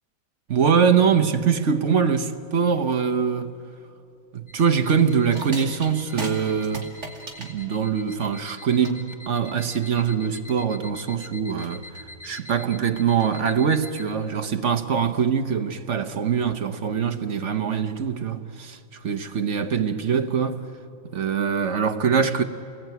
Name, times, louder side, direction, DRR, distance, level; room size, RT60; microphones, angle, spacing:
voice 1, 0.5-3.6 4.3-6.9 7.4-20.6 21.1-22.4, right 6 dB, 50° right, 1.0 m, -23 dB
sound 1, 4.5-14.1, left 2 dB, 30° left, 1.9 m, -45 dB
sound 2, 4.8-13.9, right 2 dB, 35° right, 3.0 m, -40 dB
29.5 x 20.5 x 9.3 m
omnidirectional pair, 2.2 m